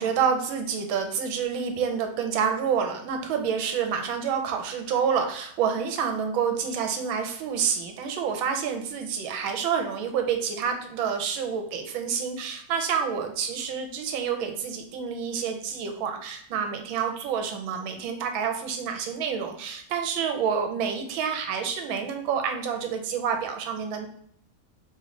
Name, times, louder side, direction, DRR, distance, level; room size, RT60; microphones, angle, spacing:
voice 1, 0.0-24.1, right 7 dB, 75° right, 5 dB, 1.4 m, -28 dB
3.6 x 3.2 x 3.7 m, 0.65 s
omnidirectional pair, 2.3 m